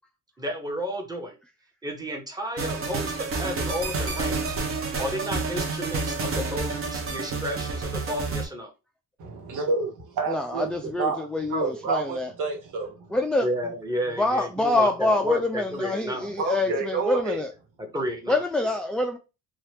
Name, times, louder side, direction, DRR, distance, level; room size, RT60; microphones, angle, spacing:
voice 1, 0.4-1.4 1.8-4.6 5.0-8.7 13.4-16.3 16.7-16.8 17.8-18.4, equal, 15° right, 1.0 m, -32 dB
sound 1, 2.6-8.5, right 3 dB, 45° right, 0.9 m, -29 dB
voice 2, 9.2-13.1 16.4-17.4, right 4 dB, 85° right, 1.2 m, -29 dB
voice 3, 10.3-12.3 13.1-13.5 14.2-17.5 18.3-19.2, left 2 dB, 5° left, 0.3 m, -26 dB
2.8 x 2.3 x 3.3 m
cardioid pair, 90°, 30 cm